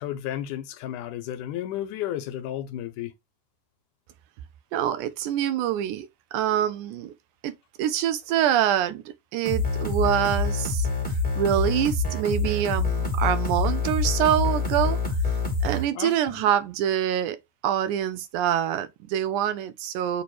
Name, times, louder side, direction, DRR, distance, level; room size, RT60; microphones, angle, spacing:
voice 1, 0.0-3.1 16.0-16.4, left 12 dB, 80° left, 2.1 m, -33 dB
voice 2, 4.7-7.1 7.4-9.0 9.3-15.0 15.6-20.2, right 10 dB, 80° right, 1.9 m, -25 dB
sound 1, 9.4-15.8, left 3 dB, 5° left, 1.6 m, -26 dB
6.8 x 3.0 x 4.7 m
omnidirectional pair, 3.8 m